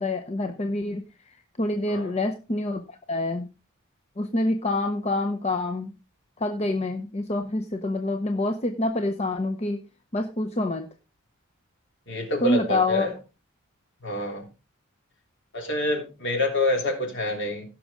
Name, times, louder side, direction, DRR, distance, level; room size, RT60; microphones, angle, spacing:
voice 1, 0.0-3.5 4.2-5.9 6.4-9.8 10.1-10.9 12.4-13.1, left 2 dB, 30° left, 5 dB, 0.7 m, -27 dB
voice 2, 12.1-13.1 14.0-14.5 15.5-17.6, left 1 dB, 55° left, 3 dB, 3.2 m, -27 dB
16.5 x 6.3 x 3.6 m, 0.30 s
head